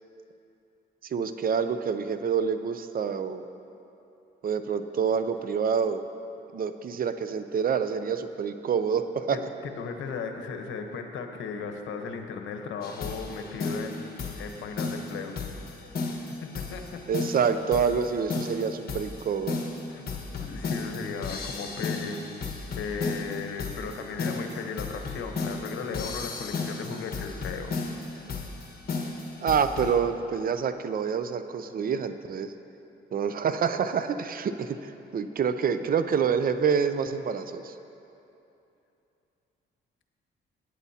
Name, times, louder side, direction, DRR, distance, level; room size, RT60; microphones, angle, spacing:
voice 1, 1.0-3.4 4.4-6.0 6.5-9.4 17.1-19.6 29.4-32.5 33.1-37.7, right 6 dB, 45° right, 10 dB, 0.5 m, -27 dB
voice 2, 9.8-15.3 16.0-17.0 19.9-20.1 20.4-22.2 22.7-27.7, left 5 dB, 75° left, 5 dB, 1.0 m, -36 dB
sound 1, 12.8-30.0, left 4 dB, 50° left, 1.5 m, -34 dB
17.5 x 9.3 x 2.8 m, 2.8 s
cardioid pair, 90°, 20 cm